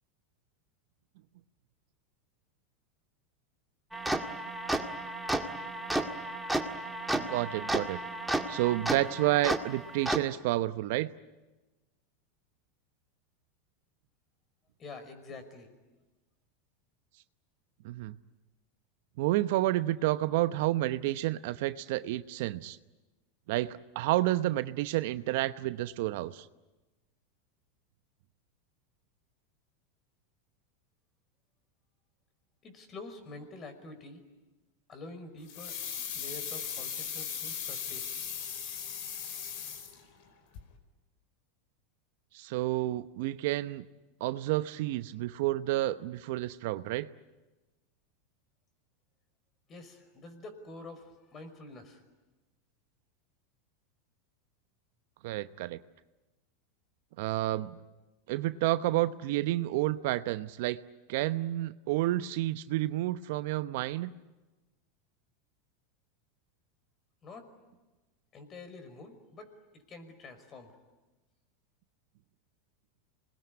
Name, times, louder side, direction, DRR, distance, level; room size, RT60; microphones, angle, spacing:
sound 1, 3.9-10.2, right 1 dB, 5° right, 2.0 m, -33 dB
voice 1, 7.1-8.0 8.5-11.1 17.8-18.2 19.2-22.8 23.5-26.5 42.3-43.8 44.2-47.1 55.2-55.8 57.2-57.8 58.3-60.8 61.1-64.1, right 16 dB, 65° right, 13 dB, 0.9 m, -30 dB
voice 2, 14.8-15.7 32.6-34.2 34.9-35.8 36.1-38.1 49.7-52.0 67.2-67.5 68.3-70.7, left 3 dB, 35° left, 8 dB, 5.5 m, -47 dB
sound 2, 35.5-40.3 40.5-40.6, left 8 dB, 60° left, 4.8 m, -38 dB
27.0 x 21.0 x 9.8 m, 1.2 s
hypercardioid pair, 95°, 0 cm